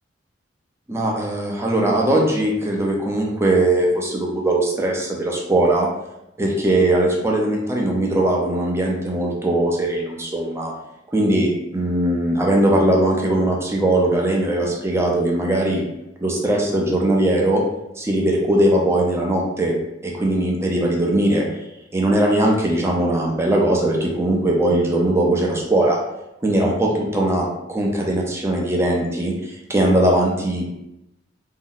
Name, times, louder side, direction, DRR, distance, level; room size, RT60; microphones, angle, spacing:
voice 1, 0.9-5.9 6.4-10.7 11.1-15.8 16.2-17.6 18.0-19.8 20.0-21.5 21.9-26.0 26.4-30.7, right 1 dB, 15° right, -1 dB, 0.5 m, -20 dB
2.7 x 2.0 x 3.9 m, 0.89 s
head